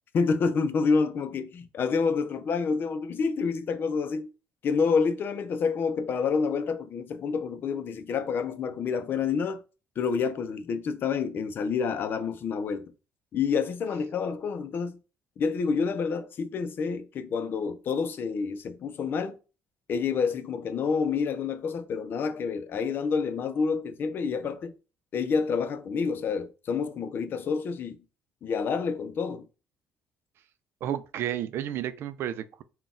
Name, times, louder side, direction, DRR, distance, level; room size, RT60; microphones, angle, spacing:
voice 1, 0.1-4.3 4.6-9.6 10.0-12.9 13.3-15.0 15.4-19.4 19.9-24.7 25.1-28.0 28.4-29.4, left 5 dB, 50° left, 0.5 m, -28 dB
voice 2, 30.8-32.6, right 11 dB, 65° right, 0.4 m, -32 dB
3.9 x 2.3 x 3.7 m
cardioid pair, 95°, 4 cm